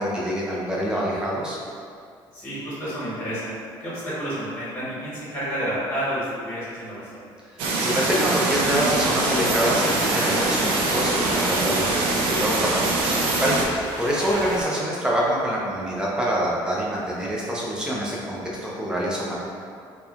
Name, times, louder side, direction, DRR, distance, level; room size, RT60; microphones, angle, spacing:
voice 1, 0.0-1.6 7.4-7.6 7.8-19.4, equal, 10° right, -5 dB, 0.4 m, -26 dB
voice 2, 2.3-3.5 3.8-7.3 14.3-14.4, equal, 25° left, -10 dB, 1.0 m, -30 dB
sound 1, 7.6-13.6, right 2 dB, 85° right, 0.4 m, -23 dB
sound 2, 8.5-14.6, right 1 dB, 60° right, 0.8 m, -35 dB
2.9 x 2.1 x 2.4 m, 2.3 s
cardioid pair, 150°, 9 cm